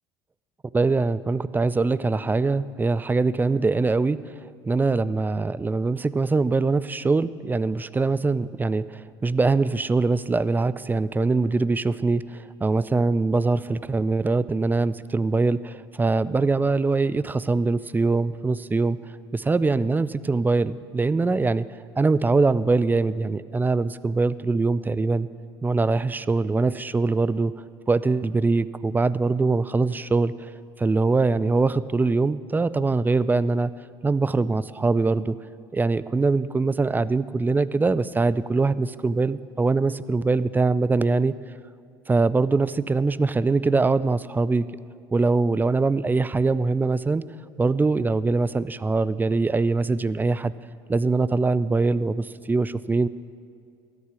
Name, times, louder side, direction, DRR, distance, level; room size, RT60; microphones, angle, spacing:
voice 1, 0.7-4.3 4.6-19.0 19.3-21.6 22.0-25.3 25.6-27.5 27.9-30.5 30.8-33.7 34.0-35.4 35.7-41.4 42.1-44.7 45.1-47.2 47.6-50.5 50.9-53.1, right 3 dB, 15° right, 17 dB, 0.4 m, -23 dB
13.0 x 9.9 x 6.2 m, 2.3 s
hypercardioid pair, 65°, 14 cm